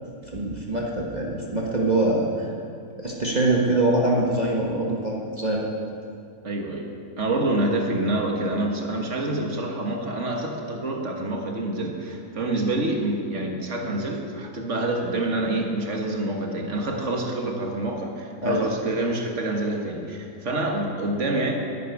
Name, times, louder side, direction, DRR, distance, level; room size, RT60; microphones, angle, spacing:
voice 1, 0.3-2.5 3.0-5.9 18.4-18.6, right 2 dB, 30° right, -3 dB, 1.4 m, -24 dB
voice 2, 6.4-6.9 7.2-21.5, right 2 dB, 50° right, 2 dB, 1.8 m, -27 dB
11.0 x 8.4 x 9.4 m, 2.4 s
omnidirectional pair, 1.6 m